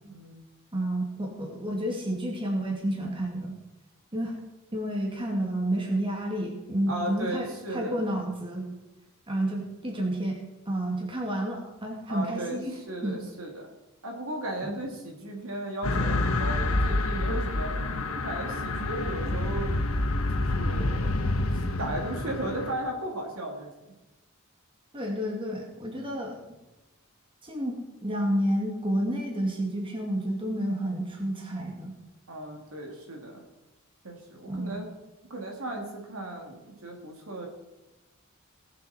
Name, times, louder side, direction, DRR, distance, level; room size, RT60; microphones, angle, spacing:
voice 1, 0.0-0.4 6.9-7.9 12.1-13.7 14.0-17.8 18.2-19.8 20.3-21.5 21.8-23.7 32.3-33.4 34.0-34.9 35.3-37.5, right 1 dB, 70° right, 1 dB, 2.8 m, -36 dB
voice 2, 0.7-3.6 4.1-4.4 4.7-8.7 9.3-13.2 14.6-14.8 24.9-26.4 27.4-32.0 34.5-34.8, right 1 dB, 25° right, 0 dB, 2.3 m, -30 dB
sound 1, 15.8-22.7, left 2 dB, 75° left, 1.1 m, -28 dB
19.0 x 7.8 x 4.4 m, 1.0 s
head